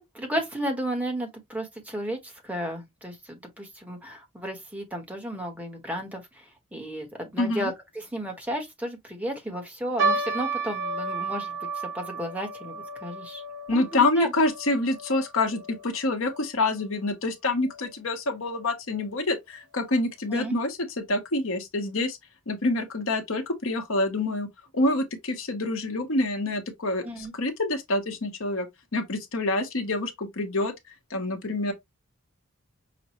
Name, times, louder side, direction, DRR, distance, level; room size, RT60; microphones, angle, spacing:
voice 1, 0.0-11.7 11.9-13.4 13.7-14.3 20.3-20.5 27.0-27.3, right 1 dB, 5° right, 1.0 m, -33 dB
voice 2, 7.4-7.7 13.7-22.2 22.5-24.5 24.7-27.0 27.3-28.7 28.9-30.7 31.1-31.7, left 2 dB, 70° left, 1.0 m, -26 dB
sound 1, 10.0-16.5 16.7-16.8 17.6-17.9 18.5-18.6 18.9-19.1, right 3 dB, 55° right, 1.1 m, -32 dB
5.9 x 2.1 x 3.0 m
head